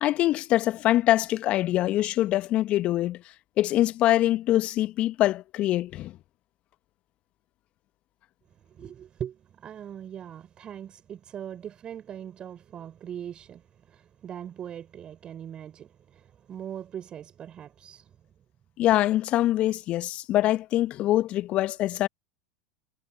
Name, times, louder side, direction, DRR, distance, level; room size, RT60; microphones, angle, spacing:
voice 1, 0.0-3.2 3.6-6.1 18.8-22.1, left 14 dB, 45° left, 1.6 m, -24 dB
voice 2, 8.6-18.2, right 9 dB, 35° right, 5.6 m, -41 dB
figure-of-eight pair, 80°, 3 cm